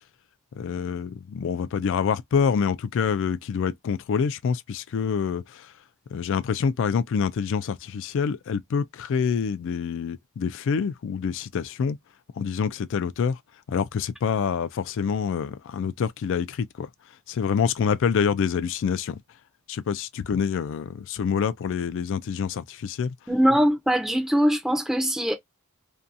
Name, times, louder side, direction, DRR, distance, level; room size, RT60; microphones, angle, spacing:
voice 1, 0.6-5.7 6.1-12.0 12.4-13.4 13.7-16.9 17.3-19.2 19.7-23.1, left 6 dB, 55° left, 0.3 m, -26 dB
voice 2, 23.3-25.3, equal, ahead, 0.5 m, -22 dB
2.7 x 2.2 x 2.4 m
head